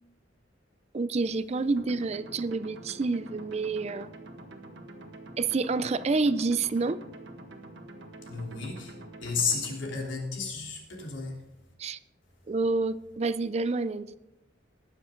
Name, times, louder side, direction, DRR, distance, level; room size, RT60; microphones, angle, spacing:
voice 1, 0.9-4.1 5.4-7.0 11.8-12.0 12.5-14.2, right 3 dB, 35° right, 16 dB, 0.4 m, -28 dB
sound 1, 1.8-9.8, right 1 dB, 65° right, 1.6 m, -46 dB
voice 2, 8.2-8.9 9.2-11.4, left 5 dB, 80° left, -1 dB, 3.4 m, -32 dB
19.5 x 7.5 x 3.8 m, 0.96 s
head